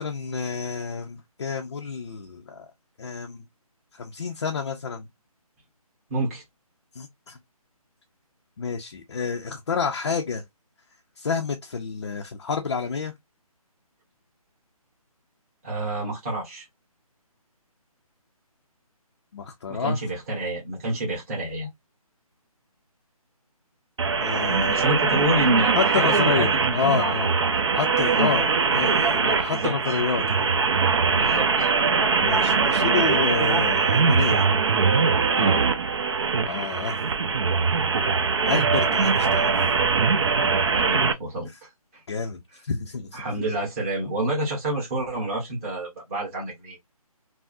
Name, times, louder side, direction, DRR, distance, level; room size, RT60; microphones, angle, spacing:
voice 1, 0.0-2.7 3.0-3.4 3.9-5.1 6.9-7.4 8.6-10.4 11.2-13.1 19.3-20.0 24.2-24.8 25.7-27.3 27.7-30.5 32.2-34.5 36.5-37.0 38.5-39.5 42.1-43.2, left 5 dB, 45° left, 0.5 m, -29 dB
voice 2, 6.1-6.4 15.6-16.7 19.7-21.7 24.7-27.2 28.1-28.4 29.5-29.7 31.1-31.7 35.3-35.6 40.6-41.5 43.1-46.8, right 1 dB, 25° right, 1.2 m, -28 dB
sound 1, 24.0-41.1, right 5 dB, 45° right, 0.5 m, -22 dB
3.5 x 2.0 x 2.4 m
figure-of-eight pair, 160°, 19 cm